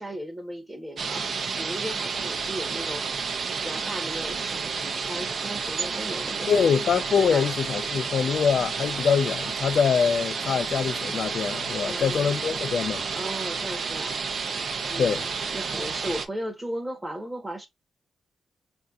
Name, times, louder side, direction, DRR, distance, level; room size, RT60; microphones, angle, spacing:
voice 1, 0.0-6.7 7.2-7.5 11.8-12.3 13.1-14.4 14.9-17.7, right 1 dB, 15° right, 0.9 m, -36 dB
sound 1, 1.0-16.3, right 5 dB, 65° right, 0.6 m, -31 dB
voice 2, 6.5-13.0 15.0-15.3, left 6 dB, 65° left, 0.3 m, -24 dB
5.3 x 2.6 x 2.3 m
cardioid pair, 105°, 0 cm